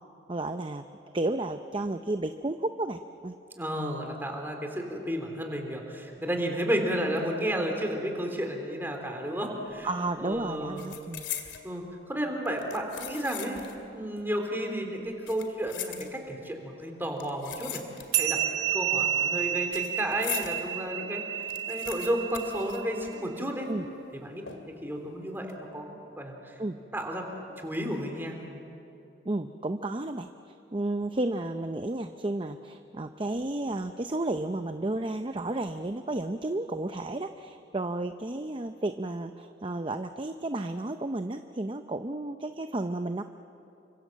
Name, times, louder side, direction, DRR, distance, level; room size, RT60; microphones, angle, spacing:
voice 1, 0.3-0.8 1.1-3.3 9.8-11.3 23.7-23.9 26.6-26.8 29.3-30.3 30.7-43.2, right 2 dB, 30° right, 8 dB, 0.6 m, -32 dB
voice 2, 3.6-9.9 10.2-10.9 11.6-13.7 13.9-17.8 18.2-21.2 21.7-23.7 24.2-26.6 26.9-27.2 27.6-28.4, equal, 10° right, 2 dB, 3.5 m, -32 dB
sound 1, 9.7-10.0 10.3-11.7 12.4-13.8 14.1-14.2 15.1-16.5 17.2-18.4 18.6-20.6 21.0-21.1 21.3-23.4 23.7-23.8 24.5-24.9 25.3-25.5, left 10 dB, 80° left, 2.6 m, -40 dB
sound 2, 18.1-23.0, right 10 dB, 55° right, 1.6 m, -30 dB
29.5 x 25.5 x 7.5 m, 2.8 s
head